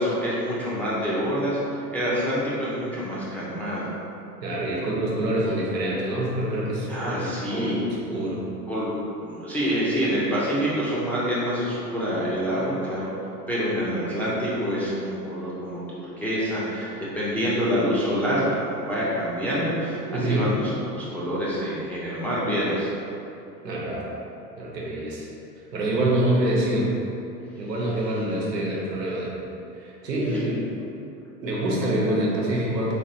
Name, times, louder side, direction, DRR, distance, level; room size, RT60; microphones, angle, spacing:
voice 1, 0.0-3.9 6.9-7.7 8.1-8.3 8.7-8.9 9.2-13.1 13.5-22.9, equal, 5° left, -9 dB, 0.5 m, -26 dB
voice 2, 4.4-7.3 7.5-7.8 8.1-8.4 20.1-20.5 23.6-24.1 24.6-25.3 25.7-26.9 27.6-29.4 29.8-30.7 31.4-33.0, right 1 dB, 80° right, -4 dB, 1.0 m, -26 dB
3.4 x 3.3 x 2.8 m, 2.7 s
figure-of-eight pair, 85°, 49 cm